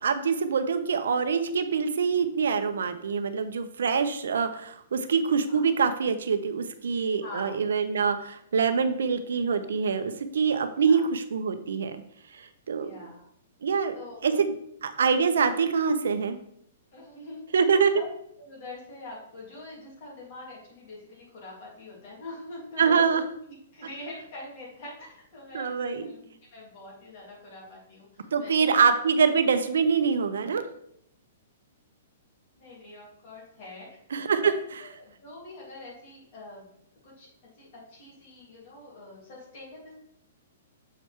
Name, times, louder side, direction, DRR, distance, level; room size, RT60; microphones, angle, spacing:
voice 1, 0.0-12.0 12.3-12.9 13.6-14.0 14.2-14.5 14.8-16.4 17.5-17.9 22.8-23.2 25.5-26.1 28.3-30.6 34.1-34.5, right 6 dB, 85° right, 10 dB, 0.8 m, -25 dB
voice 2, 7.2-7.6 10.8-11.1 12.8-13.3 13.9-14.4 16.9-18.1 18.4-23.2 23.5-28.5 29.2-29.3 32.5-34.0 34.4-34.5 34.8-36.7 37.0-37.3 37.6-40.0, left 2 dB, 35° left, -4 dB, 3.2 m, -44 dB
6.9 x 4.7 x 4.6 m, 0.70 s
hypercardioid pair, 175°, 0 cm